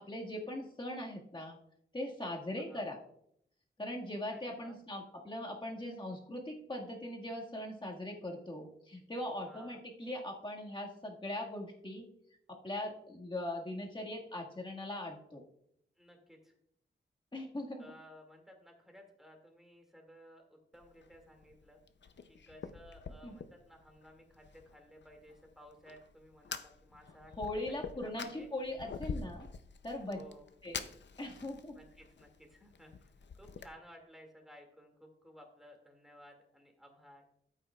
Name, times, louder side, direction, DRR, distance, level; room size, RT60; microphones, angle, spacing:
voice 1, 0.0-1.6 1.9-3.0 3.8-12.1 12.5-15.4 17.3-17.9 23.2-23.3 27.4-29.5 29.8-30.2 30.6-30.9 31.2-31.8, left 1 dB, 25° left, -1 dB, 1.8 m, -40 dB
voice 2, 4.3-4.8 9.4-9.8 16.0-16.5 17.8-21.8 22.3-28.5 30.1-30.5 31.8-37.2, equal, ahead, 2 dB, 2.2 m, -57 dB
Fire, 20.7-33.7, left 6 dB, 65° left, 0.6 m, -47 dB
13.0 x 8.5 x 2.4 m, 0.72 s
wide cardioid pair, 95°, 20 cm